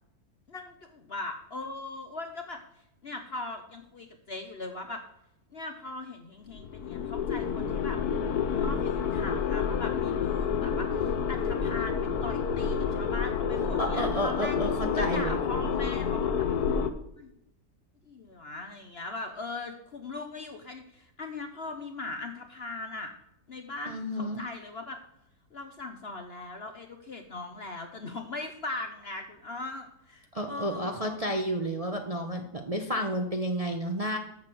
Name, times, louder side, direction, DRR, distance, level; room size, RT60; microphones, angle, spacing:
voice 1, 0.5-2.6 3.0-5.0 5.5-8.0 8.5-14.6 14.9-16.5 17.2-17.3 18.0-23.1 23.5-25.0 25.5-31.2, left 2 dB, 45° left, 6 dB, 0.9 m, -39 dB
sound 1, 6.5-16.9, left 6 dB, 65° left, 1.3 m, -29 dB
voice 2, 13.8-15.4 23.9-24.4 30.3-34.2, equal, 30° right, 4 dB, 0.8 m, -31 dB
8.5 x 6.6 x 7.8 m, 0.81 s
omnidirectional pair, 1.8 m